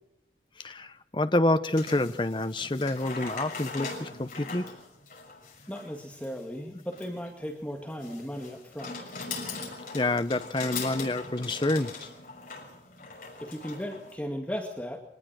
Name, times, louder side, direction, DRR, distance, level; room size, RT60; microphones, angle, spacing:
voice 1, 0.6-4.7 9.9-12.1, left 2 dB, 25° left, 0.8 m, -28 dB
Shopping cart - carriage medium speed, 1.7-14.1, left 4 dB, 50° left, 6.2 m, -41 dB
voice 2, 5.7-9.1 13.4-15.1, equal, 5° left, 2.1 m, -36 dB
24.0 x 19.5 x 6.3 m
head